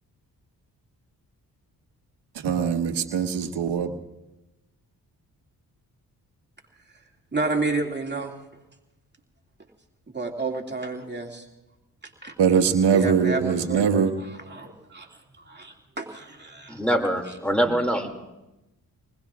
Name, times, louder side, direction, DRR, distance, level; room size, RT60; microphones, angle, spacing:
voice 1, 2.4-4.0 12.4-14.1, right 7 dB, 75° right, 7 dB, 1.4 m, -22 dB
voice 2, 7.3-8.4 10.1-11.4 12.2-12.3 12.9-14.1 14.5-15.1 15.5-16.8, right 3 dB, 25° right, 2 dB, 2.3 m, -30 dB
voice 3, 16.7-18.2, equal, 5° left, 4 dB, 2.4 m, -24 dB
27.0 x 20.5 x 2.4 m, 0.97 s
supercardioid pair, 45°, 41 cm